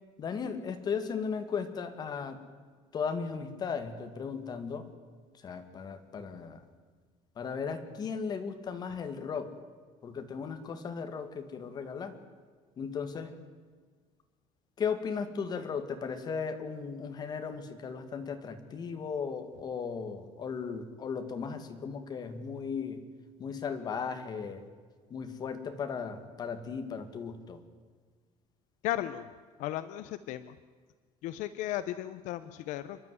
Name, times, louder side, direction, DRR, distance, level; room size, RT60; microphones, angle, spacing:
voice 1, 0.2-2.4 2.9-4.9 5.3-6.6 7.4-9.5 10.0-12.1 12.8-13.3 14.8-23.0 23.4-24.6 25.1-27.6, left 6 dB, 30° left, 7 dB, 1.9 m, -36 dB
voice 2, 28.8-29.3 29.6-30.6 31.2-33.0, left 13 dB, 70° left, 13 dB, 0.8 m, -35 dB
28.5 x 11.0 x 9.5 m, 1.5 s
cardioid pair, 165°, 13 cm